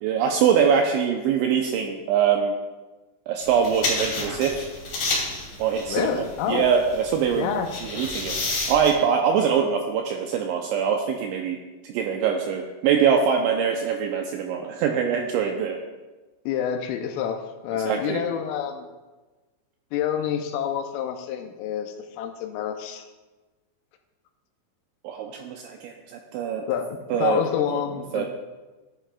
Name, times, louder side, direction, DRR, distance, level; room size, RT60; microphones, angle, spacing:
voice 1, 0.0-2.5 3.3-4.6 5.6-7.5 7.8-8.4 8.7-11.6 11.8-15.8 17.9-18.2 25.0-26.6 27.1-27.4 27.7-27.8 28.1-28.3, right 7 dB, 85° right, 2 dB, 2.6 m, -23 dB
sound 1, 3.4-8.9, left 2 dB, 50° left, 3.7 m, -31 dB
voice 2, 5.9-6.7 7.4-7.7 16.5-18.9 19.9-23.1 26.7-28.3, left 9 dB, 85° left, 6 dB, 3.1 m, -28 dB
14.0 x 10.0 x 2.3 m, 1.2 s
omnidirectional pair, 5.9 m